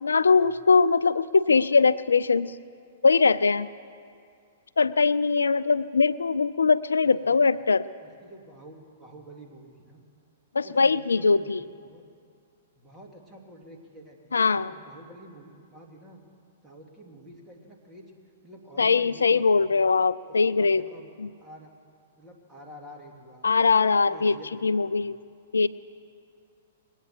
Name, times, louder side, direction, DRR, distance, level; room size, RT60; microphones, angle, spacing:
voice 1, 0.0-2.5 3.0-3.7 4.8-7.9 10.5-11.6 14.3-14.7 18.8-20.8 23.4-24.3 24.6-25.2 25.5-25.7, left 4 dB, 85° left, 17 dB, 0.3 m, -21 dB
voice 2, 8.0-10.0 10.6-12.0 12.7-14.2 14.5-16.2 16.6-18.1 18.4-19.8 20.3-21.1 21.4-21.7 22.1-23.5 24.1-25.1, right 1 dB, 15° right, -1 dB, 2.7 m, -48 dB
21.0 x 8.9 x 7.6 m, 2.3 s
hypercardioid pair, 115°, 0 cm